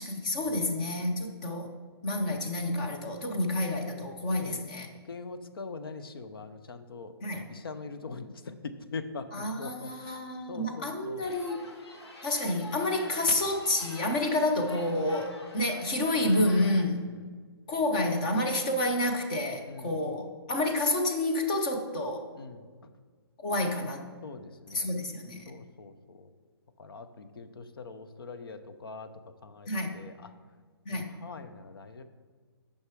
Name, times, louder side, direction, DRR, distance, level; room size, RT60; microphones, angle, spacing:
voice 1, 0.0-1.7 2.0-4.9 7.2-7.4 9.3-11.6 12.2-17.0 17.7-22.2 23.4-24.0 24.7-25.4 29.7-29.9 30.9-31.1, left 1 dB, 20° left, 3 dB, 0.7 m, -29 dB
voice 2, 5.1-7.1 7.5-10.2 10.5-11.3 16.2-16.3 17.1-17.3 19.7-20.0 22.4-22.9 24.2-24.9 25.5-26.3 26.8-29.1 29.4-30.3 30.9-32.0, left 4 dB, 60° left, 9 dB, 0.7 m, -43 dB
sound 1, 11.2-16.8, left 1 dB, 85° left, 1.4 m, -47 dB
6.6 x 5.6 x 4.7 m, 1.5 s
hypercardioid pair, 170°, 13 cm